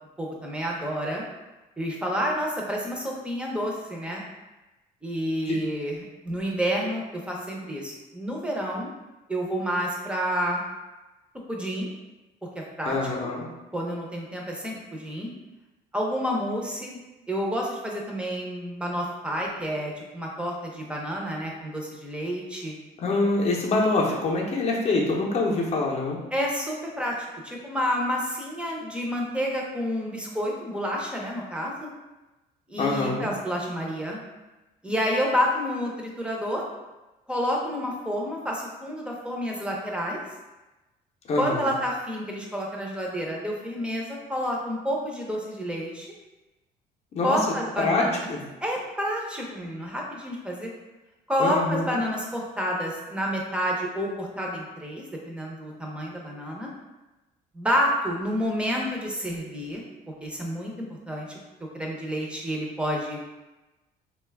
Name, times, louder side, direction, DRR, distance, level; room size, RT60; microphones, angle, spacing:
voice 1, 0.2-1.2 1.8-4.2 5.0-8.9 9.3-10.6 11.5-11.9 12.5-13.0 13.7-15.3 15.9-17.0 17.3-22.7 26.3-27.1 27.4-31.9 32.7-34.2 34.8-36.6 37.3-40.2 41.4-46.1 47.2-48.3 48.6-50.7 51.3-56.7 57.5-59.8 60.2-60.7 61.1-61.4 61.7-63.2, equal, 5° right, -2 dB, 0.6 m, -29 dB
voice 2, 12.9-13.5 23.0-26.2 32.8-33.3 41.3-41.7 47.1-47.4 47.8-48.0 48.3-48.4 51.4-51.9, left 3 dB, 40° left, -2 dB, 0.6 m, -25 dB
3.0 x 2.3 x 3.3 m, 1.1 s
cardioid pair, 110°, 17 cm